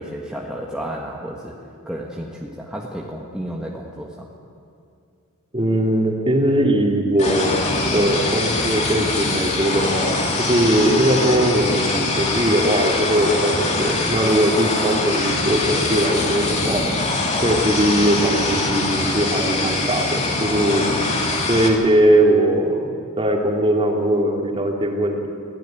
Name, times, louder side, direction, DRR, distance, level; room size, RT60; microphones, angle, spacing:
voice 1, 0.0-4.3, equal, 5° right, -2 dB, 1.5 m, -32 dB
voice 2, 5.5-7.6 7.9-10.2 10.5-16.8 17.4-20.8 21.5-22.9 23.2-25.3, right 1 dB, 25° right, 0 dB, 2.9 m, -20 dB
sound 1, 7.2-21.7, left 2 dB, 30° left, 3.0 m, -23 dB
23.5 x 16.0 x 9.1 m, 2.5 s
head